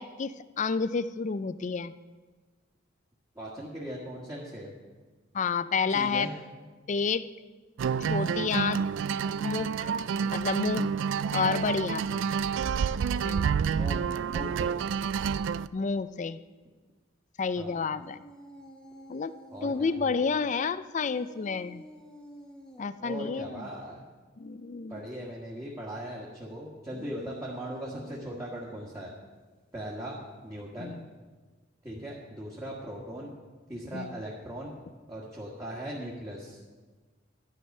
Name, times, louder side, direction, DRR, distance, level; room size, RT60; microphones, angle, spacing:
voice 1, 0.0-1.9 5.3-6.3 6.9-7.3 8.1-8.8 9.4-9.9 10.2-10.9 11.3-12.0 13.2-13.5 15.7-16.4 17.4-18.2 19.1-19.3 19.6-21.8 22.8-23.7 24.4-25.0 30.8-31.0 33.9-34.2, left 5 dB, 40° left, 15 dB, 0.4 m, -30 dB
voice 2, 3.3-4.7 5.9-6.4 12.1-12.3 13.6-14.7 17.5-17.8 19.5-20.1 23.0-24.0 24.9-29.1 29.7-31.0 31.8-33.3 33.7-34.7 35.1-36.6, right 1 dB, 15° right, -5 dB, 1.7 m, -39 dB
sound 1, 7.8-15.7, right 6 dB, 70° right, 0.3 m, -29 dB
sound 2, 18.0-20.0 21.0-22.9 26.7-29.0, equal, 5° left, 1.2 m, -50 dB
12.5 x 10.0 x 5.4 m, 1.3 s
head